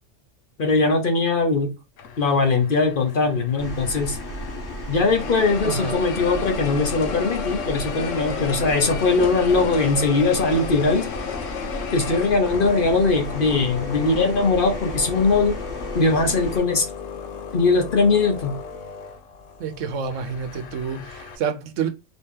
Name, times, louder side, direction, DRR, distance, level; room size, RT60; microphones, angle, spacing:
voice 1, 0.6-1.7 2.2-4.2 4.9-11.1 11.9-15.6 15.9-16.9 17.5-18.5, left 3 dB, 50° left, 1.0 m, -20 dB
sound 1, 2.0-4.7 5.1-21.4, left 6 dB, 85° left, 1.0 m, -34 dB
sound 2, 3.6-16.6, left 1 dB, 65° left, 1.6 m, -34 dB
voice 2, 5.6-6.0 19.6-21.9, right 6 dB, 85° right, 1.1 m, -28 dB
4.1 x 2.8 x 3.6 m
omnidirectional pair, 1.2 m